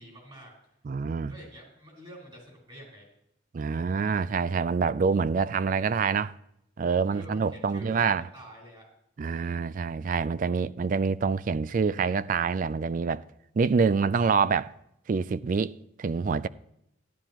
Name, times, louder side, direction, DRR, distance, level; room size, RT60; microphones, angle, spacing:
voice 1, 0.0-0.8 1.3-3.1 7.1-8.9, equal, 25° right, 4.4 m, -48 dB
voice 2, 0.8-1.3 3.5-6.3 6.8-8.2 9.2-13.2 13.6-14.7 15.1-16.5, right 5 dB, 45° right, 0.3 m, -26 dB
13.0 x 11.5 x 3.0 m
head